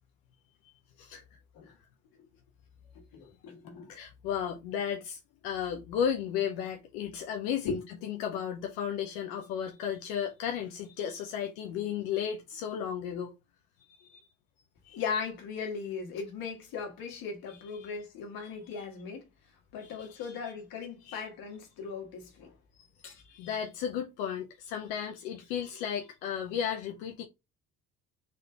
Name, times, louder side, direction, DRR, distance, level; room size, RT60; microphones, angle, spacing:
voice 1, 3.1-3.9 7.6-7.8 14.9-19.3 19.7-22.5 23.0-23.2, left 5 dB, 70° left, 1.7 m, -38 dB
voice 2, 3.9-13.3 13.9-14.2 14.8-15.0 17.5-17.9 18.4-18.8 19.8-20.4 21.1-21.2 22.8-22.9 23.2-27.2, left 8 dB, 85° left, 0.7 m, -34 dB
4.2 x 3.3 x 3.4 m
hypercardioid pair, 55°, 37 cm